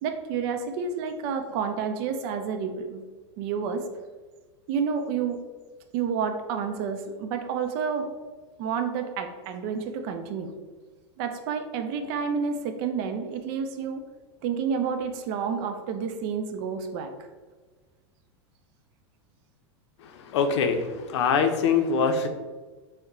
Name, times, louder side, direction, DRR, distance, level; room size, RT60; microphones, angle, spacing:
voice 1, 0.0-3.0 3.4-3.8 4.7-5.4 5.9-8.1 8.6-10.5 11.2-14.0 14.4-17.1, right 6 dB, 55° right, 6 dB, 0.5 m, -29 dB
voice 2, 20.3-22.3, left 5 dB, 75° left, 6 dB, 0.5 m, -23 dB
3.6 x 2.1 x 4.0 m, 1.3 s
hypercardioid pair, 120°, 15 cm